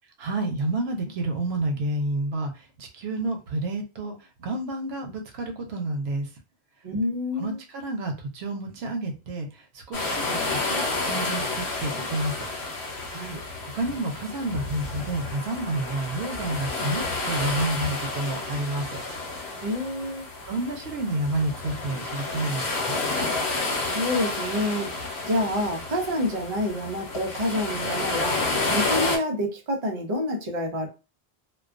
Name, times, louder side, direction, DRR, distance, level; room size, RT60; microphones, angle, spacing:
voice 1, 0.2-6.3 7.4-12.5 13.7-19.0 20.5-23.0, right 2 dB, 85° right, 0.9 m, -30 dB
voice 2, 6.8-7.6 13.1-13.4 19.6-20.3 23.9-24.9 25.2-28.4 28.7-30.9, left 1 dB, 45° right, 0.6 m, -28 dB
sound 1, 9.9-29.2, left 3 dB, 90° left, 1.1 m, -30 dB
2.3 x 2.2 x 2.4 m
omnidirectional pair, 1.0 m